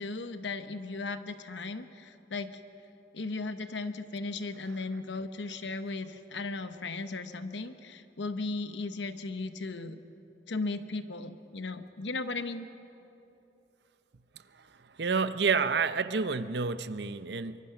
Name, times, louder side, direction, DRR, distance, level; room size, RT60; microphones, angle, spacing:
voice 1, 0.0-2.6 3.1-10.0 10.5-12.7, left 3 dB, 90° left, 10 dB, 1.1 m, -36 dB
voice 2, 14.3-17.6, right 5 dB, 70° right, 12 dB, 0.7 m, -30 dB
24.0 x 23.5 x 5.9 m, 3.0 s
head